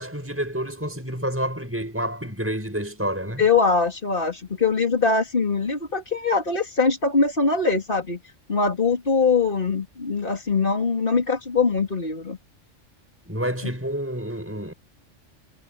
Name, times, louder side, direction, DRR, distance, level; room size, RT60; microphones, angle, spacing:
voice 1, 0.0-3.4 13.3-14.7, equal, 10° right, 6.8 m, -29 dB
voice 2, 3.4-8.2 8.5-12.4, left 4 dB, 45° left, 3.2 m, -22 dB
omnidirectional pair, 1.3 m